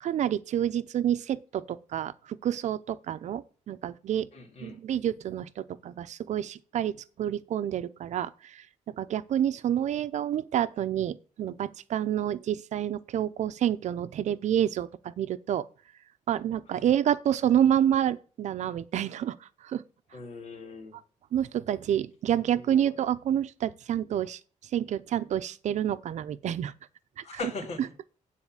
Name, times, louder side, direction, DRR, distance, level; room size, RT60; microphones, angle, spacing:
voice 1, 0.0-4.3 4.6-8.7 9.0-15.7 16.3-19.8 21.3-24.4 24.7-26.7 27.2-27.3, right 10 dB, 65° right, 0.6 m, -28 dB
voice 2, 4.3-4.8 16.8-16.9 20.1-21.0 22.6-22.9 27.2-27.9, left 3 dB, 60° left, 2.2 m, -40 dB
9.8 x 4.2 x 7.2 m
cardioid pair, 145°, 13 cm